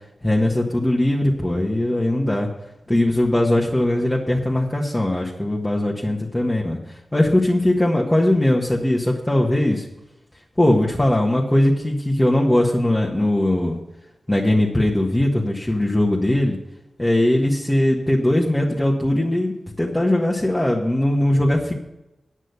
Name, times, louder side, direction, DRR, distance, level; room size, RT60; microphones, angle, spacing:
voice 1, 0.2-2.5 2.9-9.9 10.6-13.8 14.3-16.6 17.0-21.7, left 1 dB, 15° left, -3 dB, 1.5 m, -20 dB
10.0 x 6.2 x 8.2 m, 0.93 s
wide cardioid pair, 80°, 0 cm